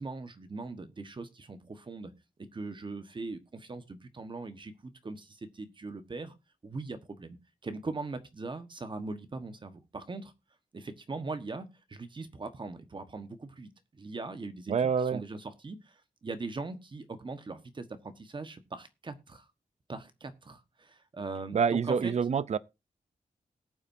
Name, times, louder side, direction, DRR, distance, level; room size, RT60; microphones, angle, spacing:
voice 1, 0.0-2.1 2.5-6.3 6.6-10.3 10.7-19.4 19.9-22.1, right 3 dB, 35° right, 1.3 m, -41 dB
voice 2, 14.7-15.2 21.5-22.6, right 6 dB, 50° right, 0.5 m, -27 dB
19.0 x 8.7 x 2.7 m
wide cardioid pair, 165°, 15 cm